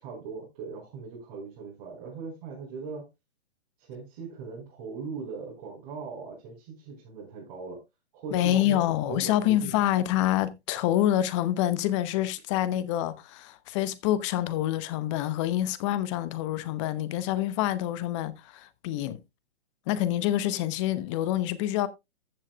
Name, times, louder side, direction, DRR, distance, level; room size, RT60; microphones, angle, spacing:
voice 1, 0.0-3.1 3.8-7.8 8.1-8.8 9.1-9.7, right 5 dB, 35° right, 4.8 m, -39 dB
voice 2, 8.3-19.2 19.9-21.9, left 13 dB, 25° left, 0.9 m, -27 dB
14.5 x 7.4 x 2.3 m
figure-of-eight pair, 130°, 34 cm